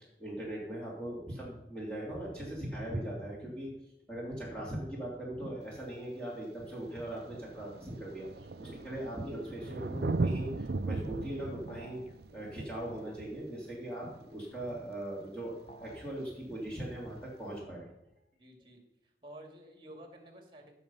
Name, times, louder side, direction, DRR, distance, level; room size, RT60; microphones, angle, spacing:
voice 1, 0.2-3.7 4.1-12.0 12.3-17.9, right 1 dB, 5° left, -5 dB, 3.0 m, -40 dB
Thunder, 5.7-5.8 6.7-6.8 7.1-14.4 16.1-16.2, right 3 dB, 65° right, 0.5 m, -38 dB
sound 1, 11.7-12.1 15.7-16.1, equal, 40° left, 1.1 m, -52 dB
voice 2, 18.4-20.7, right 1 dB, 30° right, 3 dB, 2.3 m, -52 dB
16.5 x 6.6 x 5.6 m, 0.90 s
head